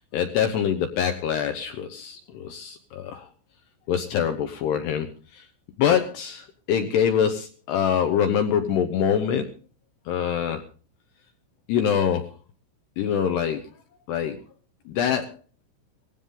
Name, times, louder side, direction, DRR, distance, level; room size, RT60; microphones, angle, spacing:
voice 1, 0.1-3.3 3.9-5.1 5.3-5.5 5.8-9.5 10.1-10.6 11.7-12.3 13.0-13.7 14.1-14.4 14.9-15.3, left 8 dB, 75° left, 7 dB, 2.5 m, -24 dB
19.0 x 15.5 x 3.8 m, 0.38 s
omnidirectional pair, 5.8 m